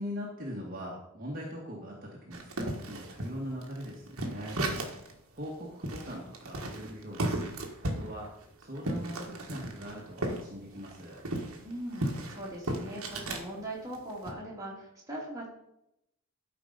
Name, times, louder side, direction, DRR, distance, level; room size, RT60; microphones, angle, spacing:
voice 1, 0.0-4.6 5.3-7.3 7.8-11.2, equal, 40° right, -3 dB, 1.8 m, -41 dB
sound 1, 2.3-5.1 5.5-5.6 5.8-10.4 10.7-13.5 13.9-14.3, right 1 dB, 80° right, 1.6 m, -35 dB
voice 2, 11.6-15.5, right 1 dB, 15° right, -5 dB, 2.8 m, -40 dB
12.5 x 5.1 x 5.3 m, 0.80 s
head